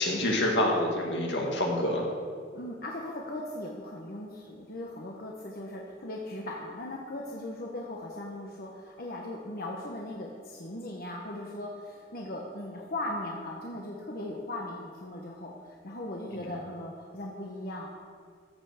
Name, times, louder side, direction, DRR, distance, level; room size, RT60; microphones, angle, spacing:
voice 1, 0.0-2.1 16.3-16.5, left 1 dB, 75° left, 0 dB, 2.1 m, -27 dB
voice 2, 2.5-17.9, left 1 dB, 55° left, -1 dB, 1.2 m, -38 dB
14.5 x 5.7 x 6.5 m, 2.1 s
head